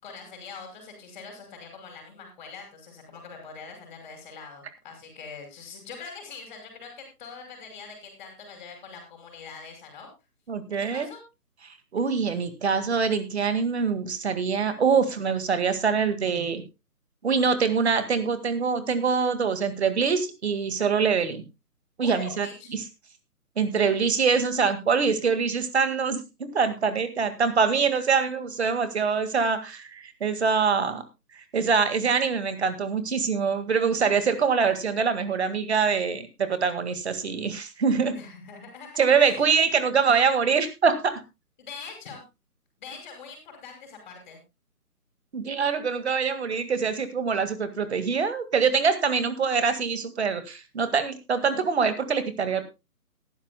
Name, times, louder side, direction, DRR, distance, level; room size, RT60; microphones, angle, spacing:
voice 1, 0.0-10.1 10.7-11.2 22.0-22.7 38.1-39.5 41.6-42.2 42.8-44.4, left 5 dB, 30° left, 3 dB, 5.6 m, -43 dB
voice 2, 10.5-11.1 11.9-16.6 17.2-21.4 22.0-22.8 23.6-31.0 31.5-38.2 39.0-41.1 45.3-52.6, right 5 dB, 45° right, 10 dB, 2.0 m, -24 dB
18.0 x 12.5 x 2.2 m, 0.25 s
figure-of-eight pair, 145°, 46 cm